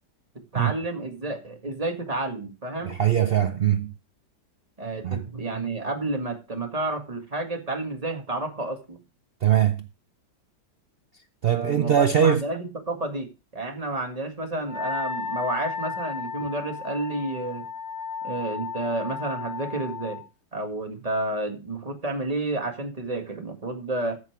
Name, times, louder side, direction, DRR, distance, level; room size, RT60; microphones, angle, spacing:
voice 1, 0.5-3.0 4.8-9.0 11.5-17.7 18.2-20.2 20.5-24.2, right 2 dB, 20° right, 1.8 m, -30 dB
voice 2, 2.8-3.9 5.0-5.2 9.4-9.9 11.4-12.4, right 9 dB, 75° right, 0.5 m, -21 dB
Wind instrument woodwind instrument, 14.6-20.2, left 6 dB, 70° left, 5.1 m, -34 dB
14.0 x 5.7 x 4.7 m
omnidirectional pair, 1.8 m